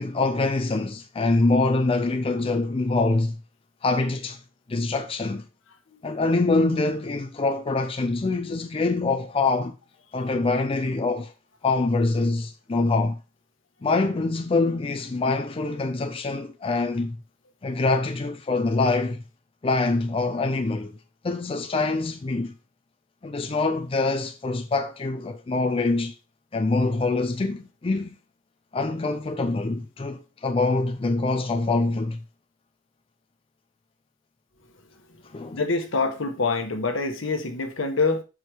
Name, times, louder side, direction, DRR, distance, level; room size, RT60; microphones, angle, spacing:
voice 1, 0.0-3.4 3.8-4.4 4.7-5.5 6.0-9.8 10.1-11.3 11.6-13.2 13.8-17.2 17.6-19.2 19.6-21.0 21.2-22.6 23.2-26.1 26.5-28.2 28.7-32.2 35.3-35.6, left 3 dB, 30° left, 0.4 m, -24 dB
voice 2, 35.5-38.2, left 3 dB, 80° left, 1.1 m, -25 dB
6.1 x 4.7 x 3.3 m
head